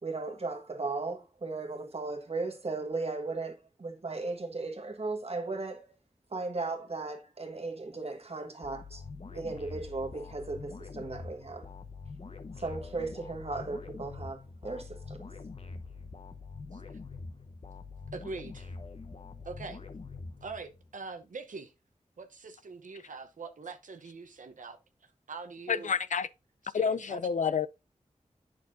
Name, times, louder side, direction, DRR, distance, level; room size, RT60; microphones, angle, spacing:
voice 1, 0.0-5.9 6.3-9.0 9.3-11.7 12.6-15.2, right 3 dB, 50° right, 1.5 m, -36 dB
sound 1, 8.6-20.9, left 4 dB, 50° left, 0.8 m, -44 dB
voice 2, 18.1-18.7 19.4-19.8 20.4-21.7 22.2-25.9 26.6-27.2, right 4 dB, 80° right, 0.8 m, -43 dB
voice 3, 25.7-26.3 26.7-27.7, left 6 dB, 70° left, 0.4 m, -29 dB
8.4 x 6.1 x 2.6 m
cardioid pair, 50°, 13 cm